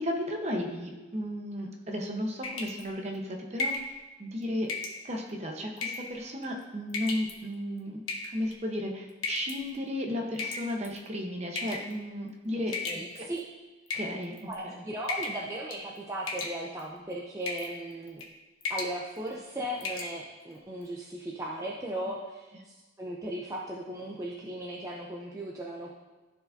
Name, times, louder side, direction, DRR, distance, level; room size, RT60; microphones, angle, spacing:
voice 1, 0.0-4.7 5.0-8.0 8.3-12.7 13.1-13.2 13.9-14.3 14.6-14.8, left 1 dB, 35° right, 2 dB, 0.9 m, -34 dB
sound 1, 2.4-2.8 3.6-3.9 4.7-5.0 5.8-6.1 6.9-7.3 8.1-8.5 9.2-9.6 10.4-11.0 11.6-11.9 12.7-13.4 13.9-14.5 15.1-15.4 15.7-16.0 16.3-16.8 17.5-17.7 18.1-18.3 18.6-19.0 19.3-19.4 19.8-20.1, left 3 dB, 85° left, 1.2 m, -34 dB
voice 2, 12.8-13.5 14.4-18.2 18.7-25.9, right 1 dB, 15° right, -4 dB, 0.6 m, -37 dB
14.0 x 4.9 x 2.7 m, 1.2 s
head